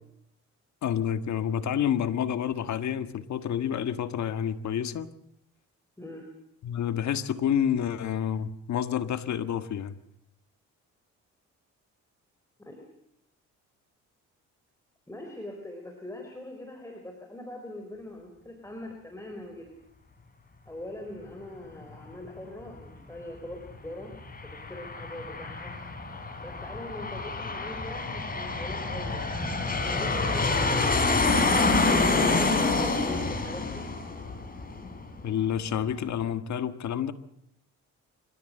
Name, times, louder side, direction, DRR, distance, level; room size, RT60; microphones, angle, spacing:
voice 1, 0.8-5.1 6.6-9.9 35.2-37.1, left 9 dB, 65° left, 11 dB, 1.6 m, -29 dB
voice 2, 15.1-19.7 20.7-24.1 24.4-25.8 26.4-29.3 29.8-33.9, left 1 dB, 10° left, 2 dB, 4.6 m, -42 dB
Aircraft, 24.1-35.3, left 3 dB, 30° left, 4.8 m, -27 dB
28.0 x 15.5 x 7.7 m, 0.77 s
cardioid pair, 90°, 30 cm